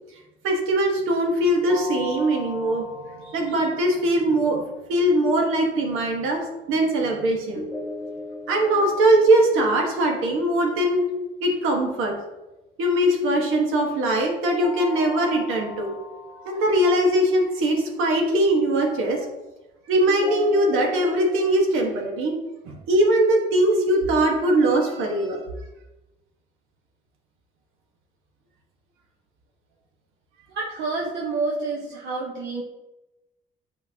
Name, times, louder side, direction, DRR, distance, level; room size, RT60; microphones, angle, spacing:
voice 1, 0.4-2.9 3.2-4.6 4.9-6.4 6.7-7.6 8.5-11.0 11.4-12.1 12.8-15.9 16.4-19.2 19.9-22.3 22.6-25.4, right 1 dB, 90° right, 1 dB, 1.4 m, -21 dB
sound 1, 1.7-4.6 7.6-10.6 14.3-17.5 20.1-21.6, equal, 5° right, 1.3 m, -37 dB
voice 2, 30.5-32.6, right 3 dB, 60° right, -3 dB, 1.0 m, -29 dB
8.3 x 4.4 x 2.8 m, 1.0 s
cardioid pair, 125°, 20 cm